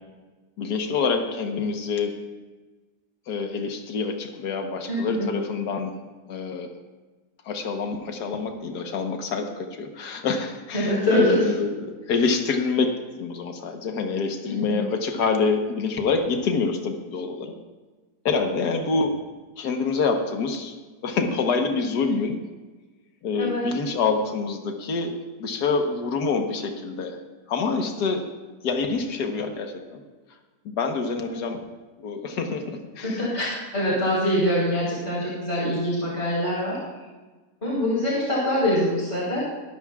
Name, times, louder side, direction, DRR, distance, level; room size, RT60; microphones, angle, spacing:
voice 1, 0.6-2.1 3.3-5.9 6.3-6.7 7.5-17.6 18.3-19.2 19.6-20.7 21.0-22.4 23.2-25.1 25.4-27.2 27.5-28.2 28.6-30.0 30.7-31.6 32.0-33.3, left 4 dB, 75° left, 4 dB, 1.7 m, -26 dB
voice 2, 4.9-5.3 10.7-11.5 14.4-14.8 23.3-23.6 31.2-31.4 33.0-36.8 37.6-39.4, left 1 dB, 40° left, -6 dB, 4.6 m, -24 dB
21.5 x 13.0 x 2.4 m, 1.3 s
omnidirectional pair, 1.8 m